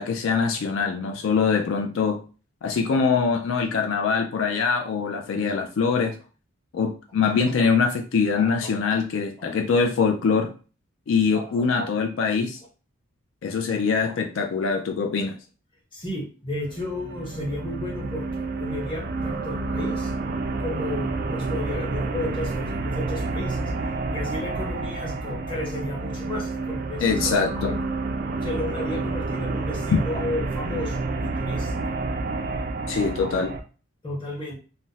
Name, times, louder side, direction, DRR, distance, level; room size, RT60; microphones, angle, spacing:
voice 1, 0.0-2.2 2.6-6.1 6.7-10.5 11.1-12.6 13.4-15.4 27.0-27.8 32.9-33.5, left 5 dB, 65° left, 4 dB, 0.3 m, -23 dB
voice 2, 8.4-8.7 9.4-9.5 11.3-11.9 12.2-12.3 14.1-14.2 15.9-20.1 20.6-23.6 24.1-27.4 27.7-27.8 28.4-32.0 34.0-34.5, left 1 dB, 25° left, -2 dB, 0.7 m, -33 dB
sound 1, 16.6-33.6, right 3 dB, 45° right, 0.3 m, -29 dB
2.5 x 2.0 x 3.8 m, 0.36 s
head